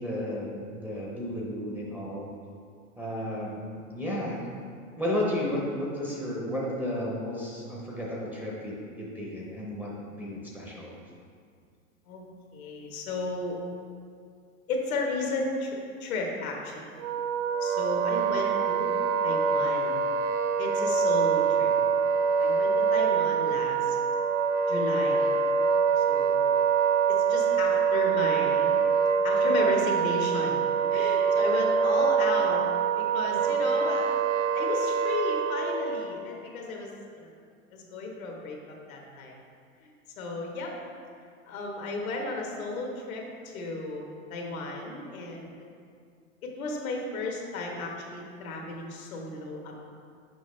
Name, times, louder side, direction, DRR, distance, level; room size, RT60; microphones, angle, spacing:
voice 1, 0.0-2.3 3.0-4.5 5.0-10.9, left 1 dB, 5° right, -5 dB, 0.8 m, -33 dB
voice 2, 12.5-13.7 14.7-17.0 17.6-18.9 19.2-20.0 20.6-21.7 22.4-24.0 24.7-25.3 26.0-26.5 27.1-28.7 29.2-30.6 30.9-32.6 32.9-34.1 34.5-37.3 37.7-39.4 39.8-39.9 40.2-40.7 41.5-43.2 43.5-44.0 44.3-45.5 46.4-49.7, left 3 dB, 75° left, 0 dB, 1.3 m, -34 dB
Wind instrument woodwind instrument, 17.0-36.1, right 6 dB, 70° right, 0.5 m, -25 dB
6.2 x 4.9 x 3.2 m, 2.2 s
hypercardioid pair, 120°, 42 cm